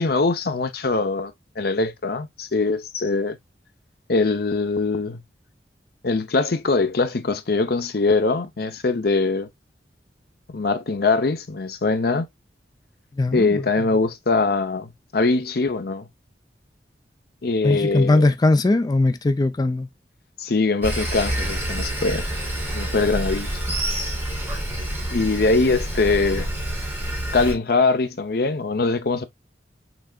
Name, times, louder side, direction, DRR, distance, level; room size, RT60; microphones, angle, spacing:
voice 1, 0.0-3.4 4.1-5.2 6.0-9.5 10.5-12.3 13.3-16.1 17.4-18.3 20.4-22.3 22.7-23.8 25.1-26.5 27.3-29.3, left 3 dB, 60° left, 0.7 m, -22 dB
voice 2, 13.2-13.6 17.6-19.9, left 2 dB, 25° left, 0.4 m, -19 dB
Sawing, 20.8-27.5, right 1 dB, 10° right, 2.2 m, -27 dB
6.1 x 3.3 x 2.3 m
head